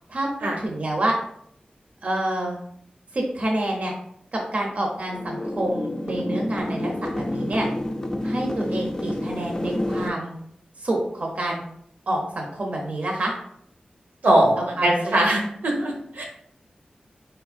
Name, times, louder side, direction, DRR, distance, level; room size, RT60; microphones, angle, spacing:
voice 1, 0.6-1.2 2.0-2.6 3.1-3.9 4.3-7.7 8.2-10.3 10.8-11.6 12.1-13.3 14.8-15.1, right 1 dB, 55° right, 0 dB, 0.7 m, -27 dB
sound 1, 5.1-10.1, left 1 dB, 20° left, 0.4 m, -29 dB
voice 2, 14.2-16.2, right 1 dB, 90° right, 0 dB, 1.0 m, -21 dB
4.2 x 3.4 x 2.4 m, 0.69 s
wide cardioid pair, 100°, 3 cm